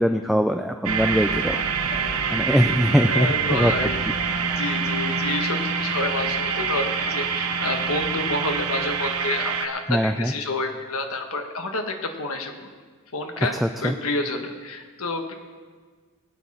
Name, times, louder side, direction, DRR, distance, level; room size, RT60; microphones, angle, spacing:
voice 1, 0.0-1.6 2.3-3.7 9.9-10.3 13.4-14.0, equal, ahead, 5 dB, 0.3 m, -22 dB
sound 1, 0.8-9.7, right 5 dB, 85° right, 1.0 m, -26 dB
voice 2, 3.1-4.0 4.4-12.7 13.1-13.5 13.8-15.3, left 2 dB, 75° left, 4 dB, 1.5 m, -29 dB
20.5 x 8.8 x 4.2 m, 1.5 s
head